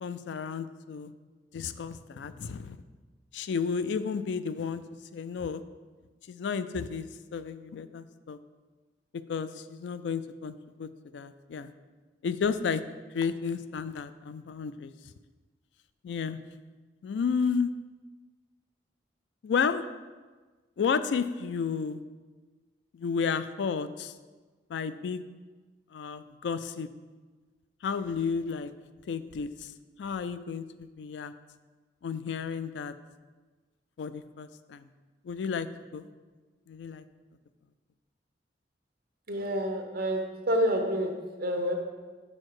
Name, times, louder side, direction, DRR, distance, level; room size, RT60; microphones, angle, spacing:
voice 1, 0.0-1.1 1.5-2.8 3.3-4.8 5.1-5.6 6.3-7.1 7.3-8.4 9.3-11.7 12.2-12.8 13.1-14.9 16.0-16.4 17.0-17.7 19.4-19.8 20.8-22.0 22.9-24.1 24.7-25.2 25.9-26.9 27.8-28.7 29.1-29.7 30.0-31.3 32.0-32.9 34.0-34.9 35.2-35.7 35.9-36.1 36.7-37.0, left 6 dB, 90° left, 13 dB, 0.3 m, -32 dB
voice 2, 39.3-41.1 41.4-41.8, equal, 60° right, 3 dB, 0.9 m, -28 dB
6.4 x 4.3 x 4.8 m, 1.3 s
head